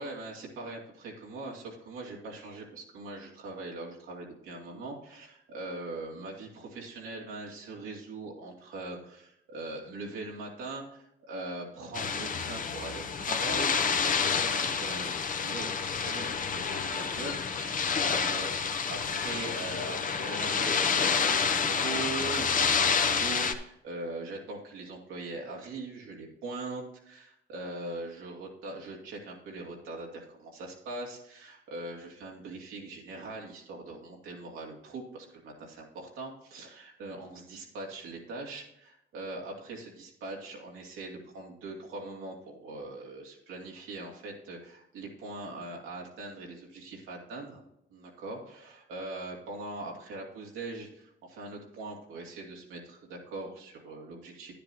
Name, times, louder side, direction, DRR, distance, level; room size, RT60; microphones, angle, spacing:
voice 1, 0.0-47.6 47.9-54.5, right 2 dB, 90° right, -1 dB, 2.6 m, -41 dB
sound 1, 11.9-23.5, left 6 dB, 40° left, 0.9 m, -29 dB
10.5 x 10.0 x 2.9 m, 0.80 s
cardioid pair, 90°, 20 cm